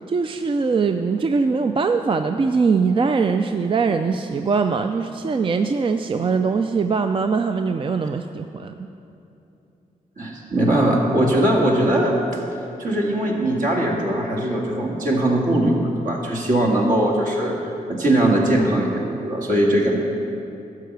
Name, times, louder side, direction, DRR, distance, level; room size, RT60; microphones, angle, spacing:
voice 1, 0.0-8.7, right 5 dB, 35° right, 7 dB, 0.4 m, -21 dB
voice 2, 10.2-12.4 12.8-17.6 17.9-20.0, right 1 dB, 65° right, -2 dB, 2.0 m, -20 dB
13.0 x 4.7 x 7.9 m, 2.8 s
cardioid pair, 80°, 15 cm